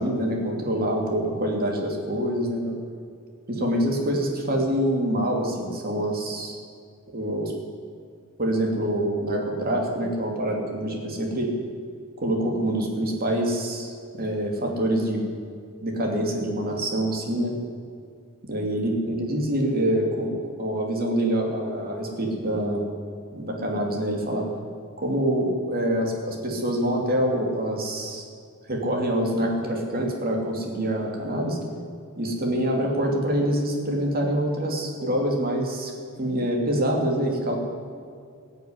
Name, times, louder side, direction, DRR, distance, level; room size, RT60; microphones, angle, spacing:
voice 1, 0.0-2.7 3.5-6.6 7.1-7.5 8.4-11.5 12.2-15.2 15.8-17.5 18.5-22.8 23.3-24.5 25.0-28.3 28.7-31.6 32.2-35.9 36.2-37.5, right 1 dB, 45° right, 1 dB, 2.7 m, -25 dB
17.0 x 6.9 x 9.8 m, 2.3 s
head